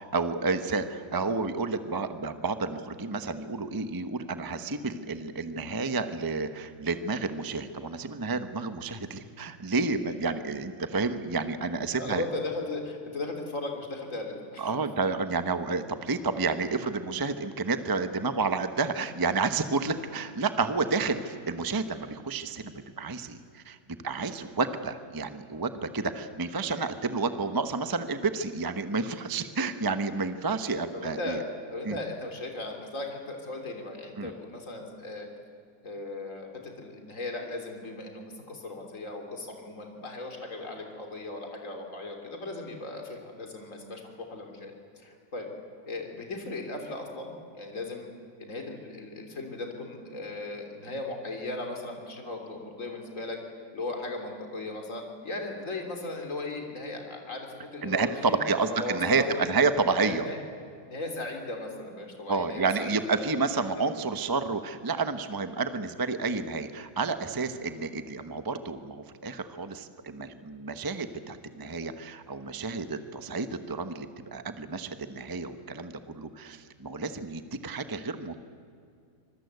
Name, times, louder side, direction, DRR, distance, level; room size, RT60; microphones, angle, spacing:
voice 1, 0.0-12.2 14.6-23.8 24.0-31.4 31.8-32.0 34.2-34.3 57.8-60.3 62.3-78.4, right 4 dB, 20° right, 9 dB, 0.7 m, -30 dB
voice 2, 12.0-14.8 20.1-20.2 30.9-35.3 35.8-45.5 45.8-48.1 48.4-53.4 53.7-58.4 58.7-59.4 60.0-60.4 60.9-63.4 63.8-63.9, left 2 dB, 40° left, 2 dB, 3.7 m, -37 dB
26.5 x 21.5 x 8.2 m, 2.3 s
omnidirectional pair, 2.1 m